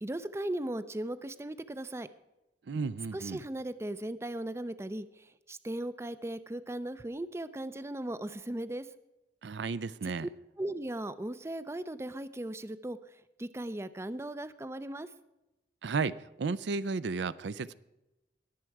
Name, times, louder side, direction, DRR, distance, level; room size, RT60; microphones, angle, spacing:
voice 1, 0.0-2.1 3.1-8.9 10.2-10.3 10.6-15.1, right 1 dB, 15° right, 0.4 m, -37 dB
voice 2, 2.7-3.4 9.4-10.3 15.8-17.8, right 4 dB, 70° right, 0.4 m, -33 dB
21.0 x 7.5 x 4.6 m
head